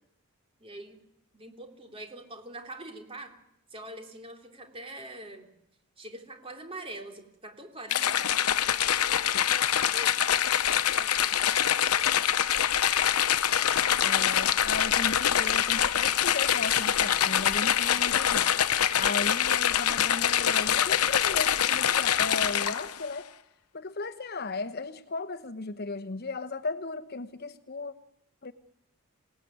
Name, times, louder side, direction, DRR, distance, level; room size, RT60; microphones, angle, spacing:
voice 1, 0.6-1.0 1.3-3.3 3.7-5.5 6.0-8.2 9.9-10.2 10.9-11.3, right 1 dB, 25° right, 3 dB, 3.6 m, -43 dB
sound 1, 7.9-23.0, left 10 dB, 85° left, 0.9 m, -25 dB
voice 2, 14.0-18.6 19.0-23.3 23.7-27.9 28.4-28.5, left 3 dB, 45° left, 11 dB, 1.0 m, -36 dB
27.0 x 18.5 x 9.4 m, 0.81 s
head